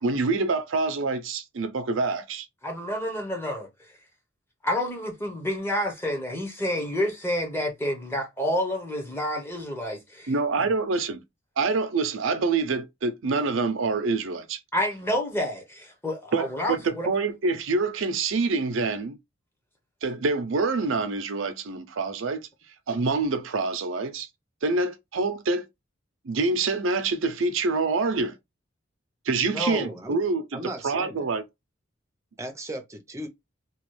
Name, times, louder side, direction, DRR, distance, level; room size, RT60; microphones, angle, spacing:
voice 1, 0.0-2.5 10.3-11.2 11.6-14.6 16.3-19.2 20.0-22.4 22.9-24.3 24.6-25.7 26.2-28.3 29.3-30.6 30.8-31.4, right 3 dB, 80° right, 0.5 m, -26 dB
voice 2, 2.6-3.7 4.6-10.3 10.6-10.7 14.7-17.1 29.5-30.0, left 1 dB, 10° left, 0.9 m, -29 dB
voice 3, 29.7-30.2 30.5-31.3 32.4-33.3, right 1 dB, 15° right, 0.6 m, -37 dB
3.0 x 2.3 x 3.1 m
head